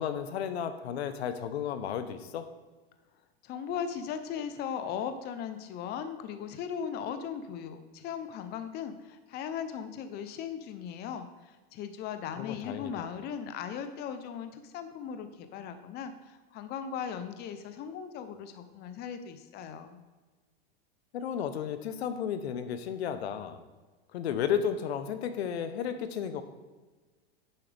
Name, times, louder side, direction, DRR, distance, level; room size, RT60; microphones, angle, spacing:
voice 1, 0.0-2.4 12.4-13.0 21.1-23.6 24.1-26.4, left 8 dB, 90° left, 10 dB, 0.9 m, -33 dB
voice 2, 3.4-20.0, left 8 dB, 30° left, 9 dB, 0.7 m, -38 dB
9.9 x 7.3 x 3.4 m, 1.3 s
supercardioid pair, 140°, 31 cm